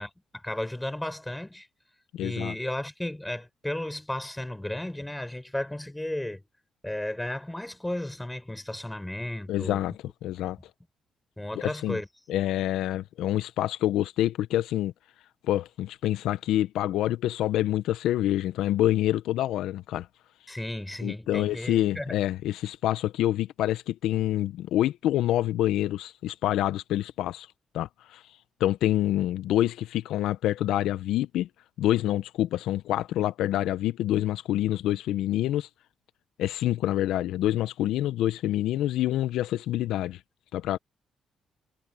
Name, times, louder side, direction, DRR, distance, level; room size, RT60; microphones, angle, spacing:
voice 1, 0.0-1.7 2.2-6.4 6.8-9.9 11.4-12.1 20.5-22.2, left 1 dB, 10° left, 6.0 m, -34 dB
voice 2, 2.1-2.5 9.5-9.9 10.2-10.6 11.5-12.0 12.3-14.9 15.5-20.1 21.0-27.5 27.7-28.2 28.6-31.5 31.8-35.7 36.4-40.2 40.5-40.8, left 13 dB, 80° left, 0.7 m, -27 dB
supercardioid pair, 55°, 0 cm